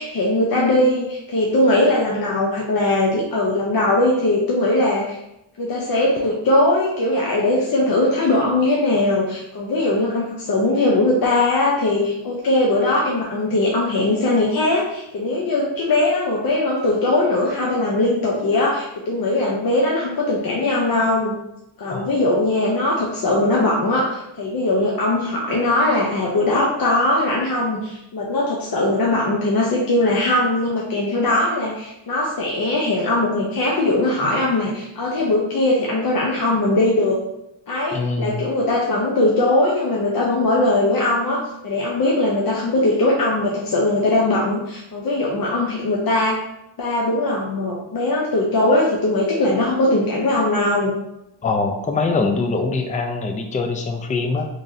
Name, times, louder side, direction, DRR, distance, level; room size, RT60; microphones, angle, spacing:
voice 1, 0.0-5.2 5.6-21.3 21.8-37.2 37.7-46.4 46.8-50.9, left 2 dB, 50° left, -3 dB, 0.7 m, -20 dB
voice 2, 37.9-38.4 51.4-54.5, left 3 dB, 20° left, 4 dB, 0.3 m, -23 dB
3.9 x 3.2 x 2.7 m, 0.85 s
wide cardioid pair, 125°, 46 cm